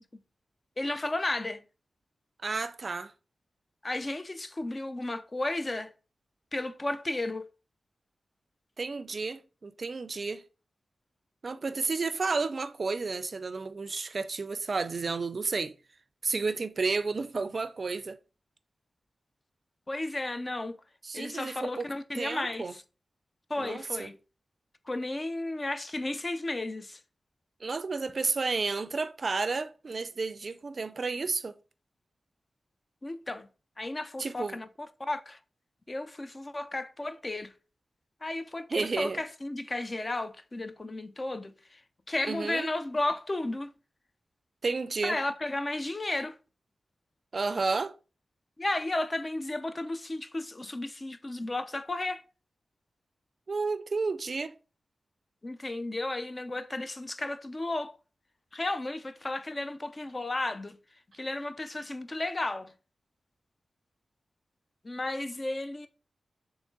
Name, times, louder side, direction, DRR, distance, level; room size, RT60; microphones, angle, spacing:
voice 1, 0.8-1.6 3.8-5.9 6.5-7.5 19.9-20.8 21.1-22.8 23.5-24.2 24.9-27.0 33.0-33.5 33.8-35.4 35.9-37.5 38.2-41.8 42.1-43.7 45.0-46.4 48.6-52.2 55.4-58.0 58.5-60.8 61.1-62.7 64.8-65.9, left 2 dB, 40° left, 0.5 m, -33 dB
voice 2, 2.4-3.1 8.8-10.4 11.4-15.7 16.2-18.2 21.0-21.9 22.1-22.7 23.6-24.1 27.6-31.5 34.2-34.6 38.7-39.2 42.2-42.7 44.6-45.2 47.3-47.9 53.5-54.5, right 4 dB, 60° right, 0.3 m, -31 dB
3.7 x 3.0 x 3.7 m
cardioid pair, 40°, 0 cm